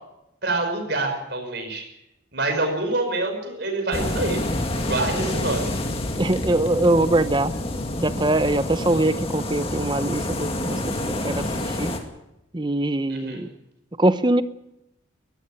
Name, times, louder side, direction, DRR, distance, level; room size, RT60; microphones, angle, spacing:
voice 1, 0.4-1.8 2.3-4.4 4.8-5.7 13.1-13.4, right 2 dB, 55° right, 5 dB, 5.6 m, -26 dB
sound 1, 3.9-12.0, left 1 dB, 30° left, 2.2 m, -28 dB
voice 2, 6.2-7.5 8.0-11.9 12.5-13.5 14.0-14.4, right 2 dB, 20° right, 13 dB, 0.8 m, -22 dB
21.5 x 14.0 x 9.1 m, 0.88 s
head